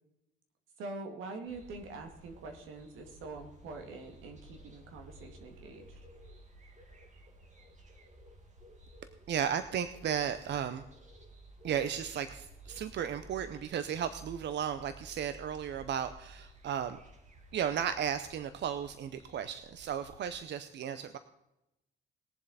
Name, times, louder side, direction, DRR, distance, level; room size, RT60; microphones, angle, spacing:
voice 1, 0.8-6.0, right 3 dB, 90° right, 4 dB, 2.1 m, -45 dB
sound 1, 1.5-20.4, right 1 dB, 35° right, 2.2 m, -55 dB
voice 2, 9.3-10.9 11.6-17.0 17.5-21.2, right 8 dB, 65° right, 12 dB, 0.7 m, -34 dB
20.0 x 7.4 x 4.1 m, 0.92 s
cardioid pair, 90°, 20 cm